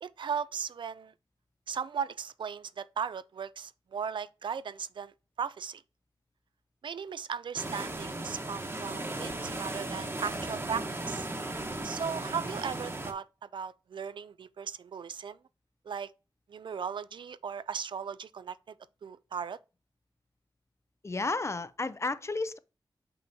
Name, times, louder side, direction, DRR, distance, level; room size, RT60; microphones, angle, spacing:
voice 1, 0.0-1.1 1.7-5.1 5.4-5.8 6.8-11.3 11.8-13.3 13.5-15.4 15.9-16.1 16.5-18.7 19.0-19.6, right 7 dB, 75° right, 0.4 m, -37 dB
sound 1, 7.5-13.1, right 2 dB, 30° right, 1.1 m, -36 dB
voice 2, 21.0-22.6, left 3 dB, 35° left, 0.5 m, -32 dB
6.7 x 5.6 x 2.7 m
cardioid pair, 65°, 8 cm